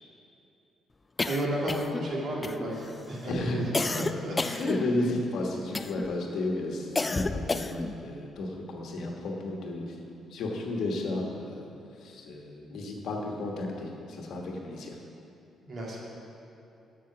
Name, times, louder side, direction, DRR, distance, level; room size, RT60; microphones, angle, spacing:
sound 1, 1.2-2.1 2.4-2.9 3.7-5.2 5.7-6.2 7.0-8.0, left 3 dB, 25° left, 0.3 m, -31 dB
voice 1, 1.2-3.9 4.2-4.7 15.6-16.0, right 1 dB, 55° right, -4 dB, 2.2 m, -33 dB
voice 2, 3.3-3.6 4.6-9.9 10.3-11.7 12.0-15.0, left 2 dB, 70° left, 0 dB, 1.3 m, -33 dB
7.5 x 6.8 x 6.0 m, 2.7 s
cardioid pair, 90°, 0 cm